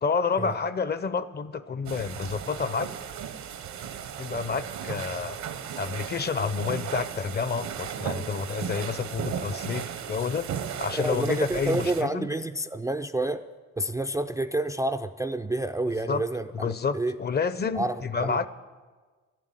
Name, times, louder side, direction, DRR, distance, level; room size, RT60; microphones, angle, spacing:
voice 1, 0.0-2.9 4.2-5.4 5.8-10.5 10.8-12.3 16.1-16.2 16.5-18.5, left 5 dB, 35° left, 14 dB, 0.6 m, -29 dB
sound 1, 1.9-12.0, right 8 dB, 70° right, 0.9 m, -36 dB
voice 2, 11.0-13.4 13.8-17.1 17.7-18.5, right 2 dB, 10° right, 7 dB, 0.4 m, -29 dB
12.0 x 7.6 x 10.0 m, 1.4 s
cardioid pair, 90°, 30 cm